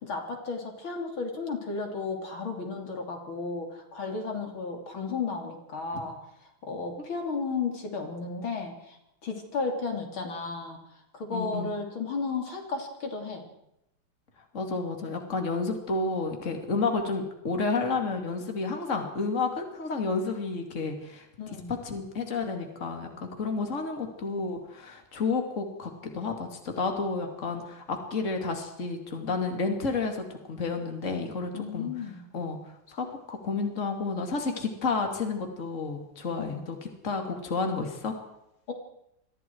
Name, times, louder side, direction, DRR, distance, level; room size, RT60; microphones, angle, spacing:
voice 1, 0.0-6.2 6.6-10.8 11.1-13.5 21.4-21.7 31.5-32.2 36.4-36.6 38.7-38.8, left 4 dB, 75° left, 3 dB, 3.8 m, -34 dB
voice 2, 11.3-11.7 14.5-21.2 21.7-31.9 32.3-32.6 32.9-36.8 37.0-38.2, left 4 dB, 35° left, 4 dB, 3.0 m, -31 dB
28.0 x 23.5 x 4.7 m, 0.82 s
omnidirectional pair, 2.3 m